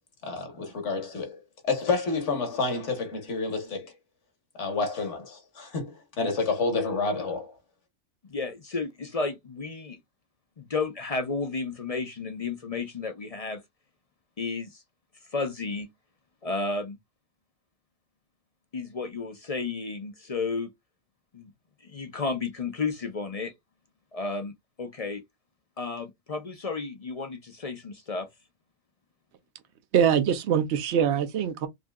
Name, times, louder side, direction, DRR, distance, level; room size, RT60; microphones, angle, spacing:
voice 1, 0.2-3.9 4.6-7.5, left 4 dB, 65° left, 1.7 m, -29 dB
voice 2, 8.3-10.0 10.6-13.6 14.4-14.8 15.3-15.9 16.4-17.0 18.7-20.7 21.3-21.5 21.8-23.5 24.1-24.5 24.8-25.2 25.8-28.3, left 4 dB, 40° left, 0.6 m, -32 dB
voice 3, 29.9-31.7, right 8 dB, 60° right, 1.0 m, -23 dB
4.9 x 2.7 x 2.4 m
omnidirectional pair, 1.3 m